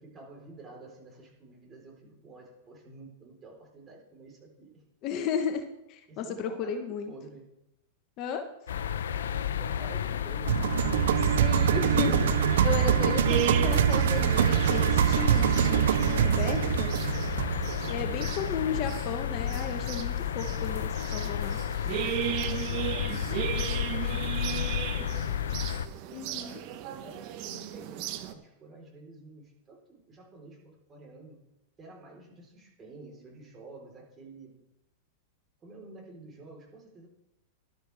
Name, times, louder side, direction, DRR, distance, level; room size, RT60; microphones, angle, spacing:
voice 1, 0.0-4.8 6.1-7.5 9.1-11.8 18.0-18.9 21.3-21.5 22.4-25.8 26.3-31.4 31.8-34.6 35.6-37.1, right 2 dB, 25° right, -1 dB, 4.1 m, -50 dB
voice 2, 5.0-5.6 5.9-7.1 8.2-8.5 11.4-12.3 12.6-16.9 17.9-21.6 26.1-26.6, left 7 dB, 45° left, 6 dB, 1.2 m, -34 dB
sound 1, 8.7-25.9, left 9 dB, 80° left, 0.6 m, -32 dB
sound 2, 10.4-18.6, right 11 dB, 75° right, 0.4 m, -25 dB
sound 3, 13.3-28.3, right 11 dB, 50° right, 1.0 m, -36 dB
13.5 x 12.0 x 3.5 m, 0.91 s
hypercardioid pair, 110°, 0 cm